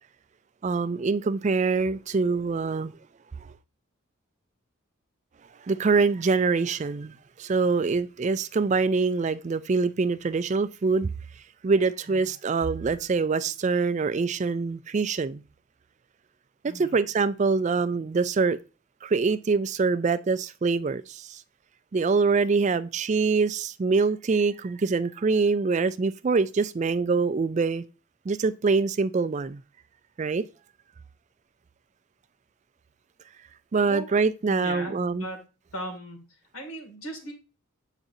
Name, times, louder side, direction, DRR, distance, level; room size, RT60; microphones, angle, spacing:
voice 1, 0.6-3.0 5.6-11.1 11.6-15.4 16.6-18.6 19.0-21.4 21.9-27.8 28.3-29.6 30.2-30.4 33.7-35.3, right 4 dB, 35° right, 0.3 m, -24 dB
voice 2, 16.7-17.0 33.8-34.2 34.5-35.4 35.7-36.2 36.5-37.3, right 1 dB, 85° left, 2.4 m, -37 dB
8.3 x 4.9 x 2.6 m
head